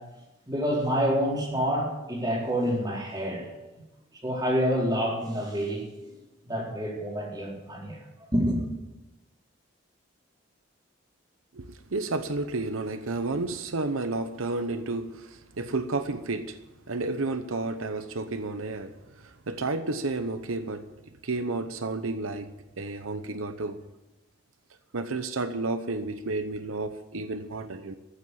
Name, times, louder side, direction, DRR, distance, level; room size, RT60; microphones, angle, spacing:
voice 1, 0.5-3.5 4.2-5.8 6.4-8.0 8.3-8.6, equal, 20° right, -4 dB, 4.3 m, -27 dB
voice 2, 11.5-16.6 16.9-20.8 21.2-22.5 22.8-23.8 24.9-27.9, right 3 dB, 90° right, 10 dB, 0.9 m, -31 dB
14.5 x 7.7 x 9.6 m, 1.0 s
head